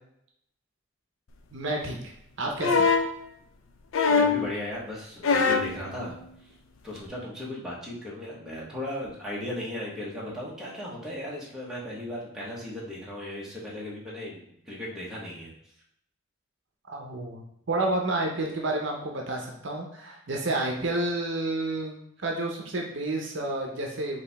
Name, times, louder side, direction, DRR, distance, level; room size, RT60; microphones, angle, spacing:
voice 1, 1.5-2.9 16.9-24.2, right 2 dB, 60° right, 1 dB, 0.7 m, -30 dB
sound 1, 2.6-3.1 3.9-4.5 5.2-5.7 7.0-7.1, left 5 dB, 75° left, 0.4 m, -22 dB
voice 2, 4.1-6.2 6.8-15.5, left 1 dB, 5° right, -6 dB, 1.1 m, -36 dB
4.9 x 2.8 x 3.4 m, 0.74 s
head